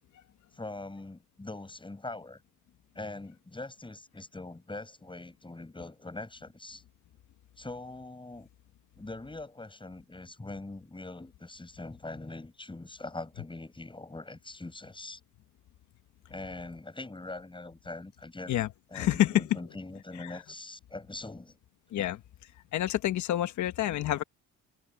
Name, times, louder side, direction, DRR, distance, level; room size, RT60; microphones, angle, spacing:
voice 1, 0.5-2.4 2.9-6.8 7.6-8.5 9.0-15.2 16.3-18.6 18.9-21.6 21.9-22.1, left 2 dB, 15° left, 6.7 m, -42 dB
voice 2, 18.9-19.6 20.2-20.4 21.9-22.2 22.7-24.2, left 13 dB, 75° left, 1.3 m, -28 dB
cardioid pair, 90°, 30 cm